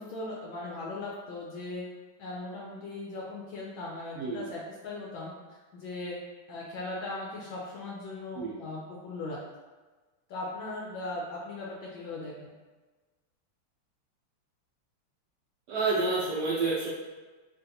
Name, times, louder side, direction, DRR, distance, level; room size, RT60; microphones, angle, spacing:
voice 1, 0.0-1.8 2.2-6.2 6.5-9.4 10.3-12.5, left 2 dB, 75° left, -4 dB, 1.2 m, -38 dB
voice 2, 15.7-16.9, right 3 dB, 85° right, -6 dB, 0.9 m, -29 dB
3.9 x 2.4 x 2.6 m, 1.3 s
omnidirectional pair, 2.4 m